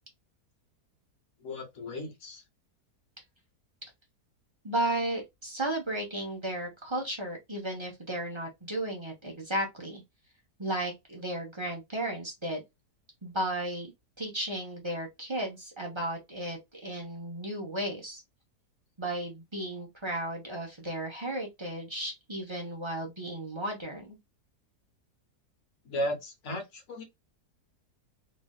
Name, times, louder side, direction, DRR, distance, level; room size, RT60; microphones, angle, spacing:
voice 1, 1.4-2.4 25.8-27.0, equal, 55° left, 1.1 m, -35 dB
voice 2, 4.6-10.0 10.6-12.6 13.2-13.9 14.2-18.2 19.0-24.2, right 1 dB, 25° right, 0.6 m, -34 dB
3.1 x 2.6 x 2.3 m
omnidirectional pair, 1.7 m